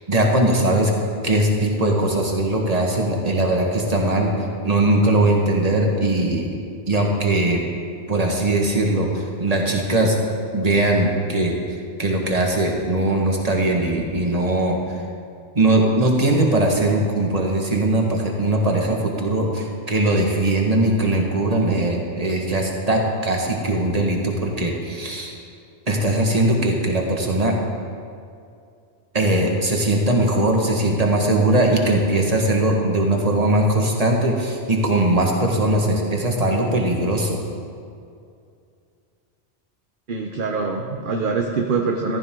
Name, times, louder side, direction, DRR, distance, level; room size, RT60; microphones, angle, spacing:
voice 1, 0.1-0.9 1.2-4.3 4.6-6.5 6.9-7.6 8.1-10.2 10.5-11.6 12.0-14.8 15.6-25.4 25.9-27.5 29.1-37.4, right 1 dB, 35° right, 0 dB, 1.8 m, -20 dB
voice 2, 40.1-42.2, right 4 dB, 50° right, 2 dB, 1.0 m, -24 dB
15.5 x 14.0 x 3.8 m, 2.4 s
omnidirectional pair, 1.2 m